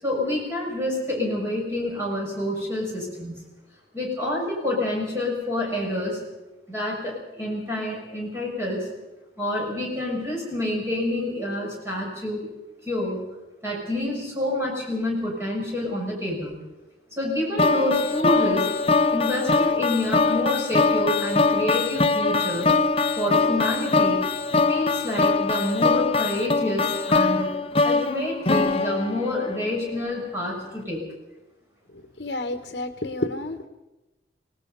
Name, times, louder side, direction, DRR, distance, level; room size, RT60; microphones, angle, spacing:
voice 1, 0.0-3.4 3.9-6.2 6.7-8.9 9.4-12.5 12.8-13.3 13.6-16.6 17.1-18.7 19.1-22.7 23.2-24.2 24.7-27.6 27.8-31.0, left 1 dB, 15° right, -3 dB, 6.8 m, -28 dB
sound 1, 17.6-29.8, left 3 dB, 30° left, 0.7 m, -22 dB
voice 2, 31.9-33.6, left 2 dB, 60° left, 6 dB, 1.2 m, -30 dB
25.5 x 18.5 x 5.5 m, 1.0 s
head